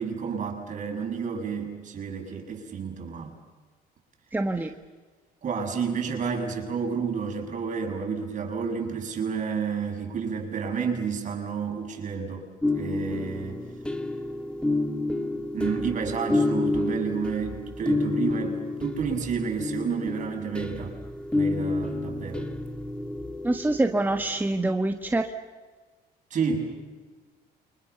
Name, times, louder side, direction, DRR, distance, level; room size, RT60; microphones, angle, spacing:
voice 1, 0.0-3.4 5.4-12.5 12.7-13.6 15.5-21.0 21.3-22.4 26.3-26.7, right 6 dB, 45° right, 2 dB, 7.4 m, -30 dB
voice 2, 4.3-4.7 23.4-25.3, right 2 dB, 10° right, 5 dB, 1.4 m, -25 dB
sound 1, 12.6-24.2, left 2 dB, 5° left, 2.0 m, -29 dB
29.0 x 25.5 x 7.0 m, 1.4 s
cardioid pair, 110°, 17 cm